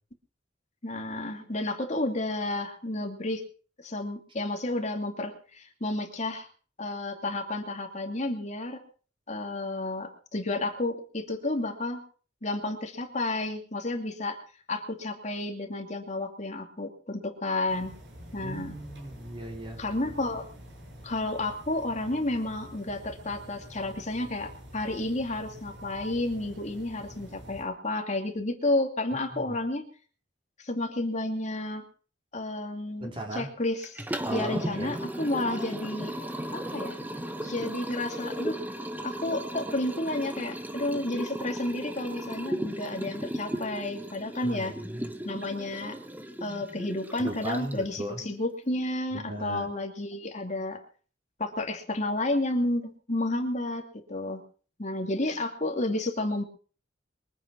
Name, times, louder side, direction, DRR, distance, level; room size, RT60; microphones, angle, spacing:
voice 1, 0.8-3.4 3.8-6.5 6.8-8.8 9.3-12.0 12.4-14.4 14.7-18.0 18.3-18.8 19.8-20.5 21.0-29.9 30.6-31.9 32.3-34.0 34.3-36.1 36.5-37.0 37.4-38.6 39.0-44.7 45.2-46.0 46.4-50.8 51.4-54.4 54.8-56.4, left 2 dB, 40° left, 2.6 m, -31 dB
sound 1, 17.7-27.6, equal, 65° right, 8.0 m, -47 dB
voice 2, 18.4-19.8 29.3-29.6 33.0-33.5 34.2-34.9 44.4-45.1 47.2-48.2 49.1-49.7, right 1 dB, 30° right, 4.0 m, -37 dB
Liquid, 33.8-47.9, right 1 dB, 10° right, 1.4 m, -36 dB
23.5 x 9.1 x 6.2 m
head